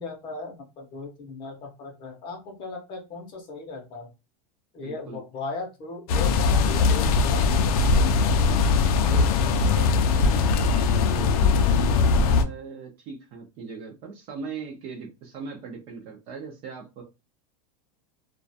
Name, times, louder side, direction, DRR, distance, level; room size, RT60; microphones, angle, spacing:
voice 1, 0.0-4.1 4.7-8.1, left 3 dB, 25° left, 2 dB, 0.6 m, -37 dB
voice 2, 4.8-5.2 8.5-17.0, right 5 dB, 30° right, 1 dB, 0.4 m, -40 dB
sound 1, 6.1-12.4, left 4 dB, 65° left, 0.4 m, -20 dB
2.3 x 2.2 x 2.6 m, 0.27 s
supercardioid pair, 170°, 20 cm